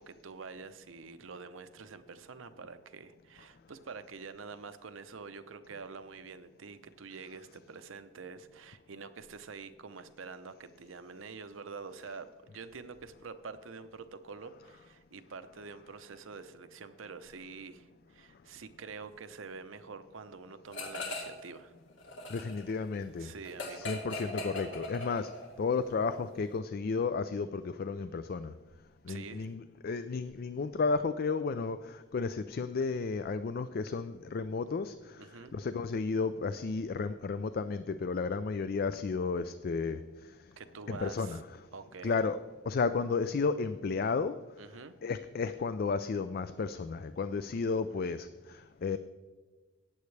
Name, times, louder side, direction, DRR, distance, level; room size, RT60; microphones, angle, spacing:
voice 1, 0.0-21.7 23.2-24.0 29.1-29.5 35.2-35.5 40.6-41.4 41.7-42.2 44.6-44.9, right 4 dB, 85° right, 10 dB, 0.7 m, -47 dB
sound 1, 20.7-21.5 21.8-25.6, left 2 dB, 70° left, 2.4 m, -40 dB
voice 2, 22.3-23.3 23.7-25.3 25.6-28.5 29.1-35.2 35.5-40.0 40.9-41.4 42.0-42.4 42.7-44.3 45.0-49.0, left 4 dB, 50° left, 12 dB, 0.4 m, -33 dB
15.0 x 9.4 x 3.3 m, 1.3 s
head